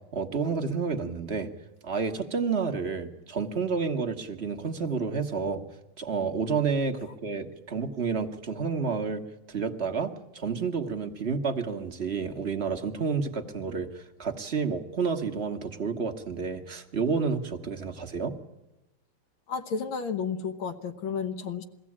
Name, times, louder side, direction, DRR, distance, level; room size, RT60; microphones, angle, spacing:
voice 1, 0.1-1.5 1.8-5.6 6.0-9.2 9.5-18.4, right 5 dB, 35° right, 5 dB, 1.4 m, -30 dB
voice 2, 19.5-21.6, left 6 dB, 70° left, 8 dB, 1.8 m, -32 dB
22.0 x 15.5 x 8.6 m, 1.0 s
omnidirectional pair, 2.3 m